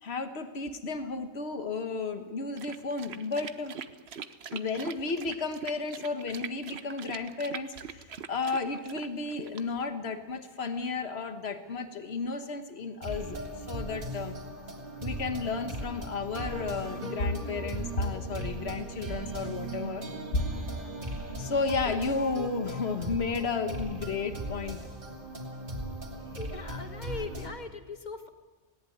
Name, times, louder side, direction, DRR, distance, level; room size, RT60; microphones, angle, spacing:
voice 1, 0.0-3.8 4.5-8.0 8.3-14.4 15.0-20.0 20.3-20.4 21.4-24.8, left 4 dB, 85° left, 8 dB, 1.6 m, -33 dB
sound 1, 2.6-9.9, right 7 dB, 85° right, 1.2 m, -42 dB
sound 2, 13.0-27.5, right 1 dB, 55° right, 3.2 m, -38 dB
voice 2, 26.1-28.3, left 3 dB, 45° left, 8 dB, 1.7 m, -40 dB
19.0 x 18.0 x 9.4 m, 1.2 s
omnidirectional pair, 1.0 m